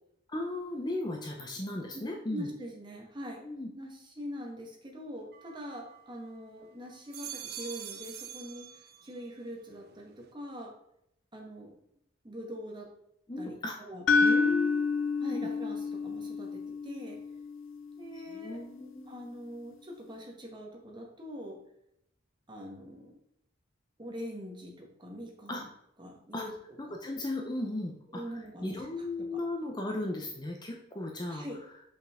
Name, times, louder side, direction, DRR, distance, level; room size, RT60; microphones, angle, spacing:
voice 1, 0.3-2.5 3.4-3.7 13.3-13.8 14.2-14.9 15.3-15.5 18.1-19.2 25.5-25.6 26.3-26.4 27.0-31.4, left 2 dB, 20° left, 2 dB, 0.6 m, -36 dB
voice 2, 2.3-3.4 3.7-10.7 11.3-11.7 12.2-12.9 13.4-14.0 15.2-17.2 18.0-18.6 19.1-21.6 22.5-23.1 24.0-25.7 26.0-26.5 28.1-29.1 29.3-29.4 31.3-31.6, equal, 25° right, 0 dB, 1.3 m, -43 dB
sound 1, 5.3-6.5 6.9-9.3 9.7-10.3, right 9 dB, 50° right, 0.5 m, -45 dB
sound 2, 14.1-18.1, left 4 dB, 75° left, 0.4 m, -29 dB
5.7 x 5.4 x 3.6 m, 0.77 s
head